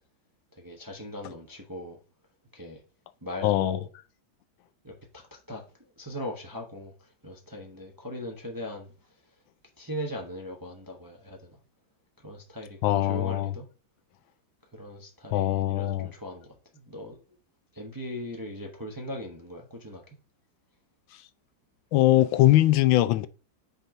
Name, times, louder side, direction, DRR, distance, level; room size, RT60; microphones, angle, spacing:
voice 1, 0.6-2.0 2.5-2.8 3.2-3.8 4.8-5.6 6.0-6.9 7.2-8.9 9.8-11.6 12.2-13.7 14.7-16.5 16.7-17.2 17.7-20.0, left 1 dB, 15° right, 0.7 m, -39 dB
voice 2, 3.4-3.8 12.8-13.5 15.3-16.1 21.9-23.3, left 15 dB, 85° left, 1.3 m, -22 dB
5.6 x 4.7 x 3.9 m
omnidirectional pair, 2.1 m